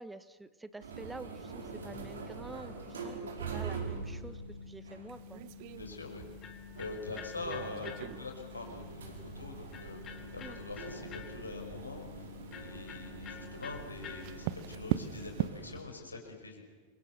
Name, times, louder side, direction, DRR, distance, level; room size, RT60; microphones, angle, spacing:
voice 1, 0.0-3.2 3.5-5.4 10.4-10.6, right 2 dB, 10° right, 15 dB, 1.1 m, -48 dB
sound 1, 0.8-15.8, right 3 dB, 70° right, 4.7 m, -44 dB
sound 2, 5.1-15.5, right 15 dB, 45° right, 1.0 m, -42 dB
voice 2, 5.7-6.3 6.8-16.6, left 3 dB, 80° left, 3 dB, 4.8 m, -44 dB
Electric guitar, 5.7-14.8, left 6 dB, 30° left, 3.2 m, -50 dB
28.0 x 24.0 x 6.7 m, 1.5 s
figure-of-eight pair, 90°, 0 cm